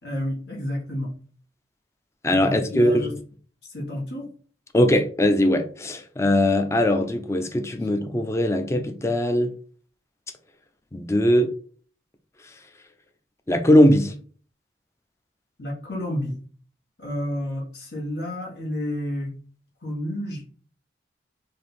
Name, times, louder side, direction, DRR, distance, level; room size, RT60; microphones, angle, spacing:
voice 1, 0.0-1.1 2.4-3.1 3.7-4.3 15.6-16.4 17.0-19.3 19.8-20.4, left 1 dB, 75° left, 1.6 m, -30 dB
voice 2, 2.2-3.1 4.7-9.5 10.9-11.5 13.5-14.1, left 1 dB, 15° left, 0.4 m, -20 dB
3.3 x 2.7 x 4.2 m
head